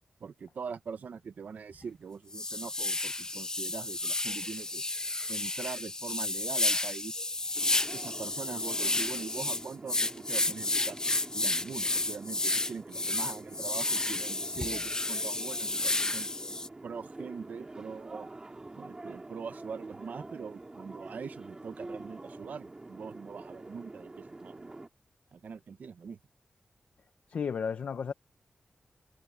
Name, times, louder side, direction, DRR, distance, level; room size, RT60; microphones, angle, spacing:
voice 1, 0.2-4.8 5.3-7.2 7.9-11.0 11.3-16.3 16.8-18.3 18.7-24.7 25.3-26.2, right 6 dB, 85° right, 1.1 m, -42 dB
sound 1, 1.7-1.8 2.3-16.7, left 2 dB, 25° left, 1.0 m, -31 dB
sound 2, 7.5-24.9, right 2 dB, 30° right, 2.5 m, -47 dB
voice 2, 27.3-28.1, left 6 dB, 85° left, 1.0 m, -33 dB
wide cardioid pair, 95°, 3 cm